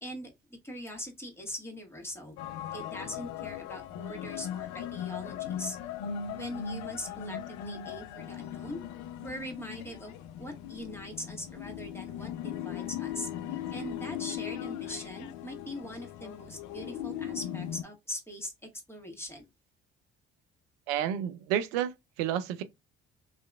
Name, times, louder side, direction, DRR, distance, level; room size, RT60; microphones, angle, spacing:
voice 1, 0.0-2.4 2.7-5.8 6.4-8.8 9.2-10.1 10.4-18.5 18.9-19.5, equal, 10° left, 1.3 m, -41 dB
sound 1, 2.4-17.8, left 9 dB, 70° left, 0.5 m, -38 dB
voice 2, 20.9-21.9 22.2-22.6, right 10 dB, 80° right, 0.5 m, -30 dB
2.7 x 2.4 x 2.2 m
hypercardioid pair, 55°, 30 cm